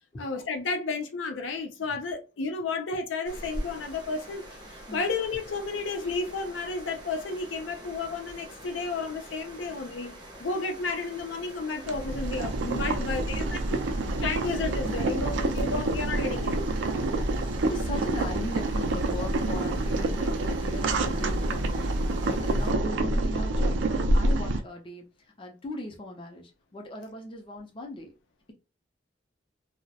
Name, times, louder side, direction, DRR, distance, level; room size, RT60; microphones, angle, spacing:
voice 1, 0.2-4.4 4.9-13.8 14.2-16.6, left 3 dB, 80° left, 0.5 m, -32 dB
sound 1, 3.2-22.7, equal, 25° right, 0.6 m, -45 dB
Boiling, 11.8-24.6, right 2 dB, 75° right, 0.4 m, -27 dB
voice 2, 12.9-13.8 17.4-28.1, left 1 dB, 25° left, 0.5 m, -39 dB
2.2 x 2.0 x 2.7 m
head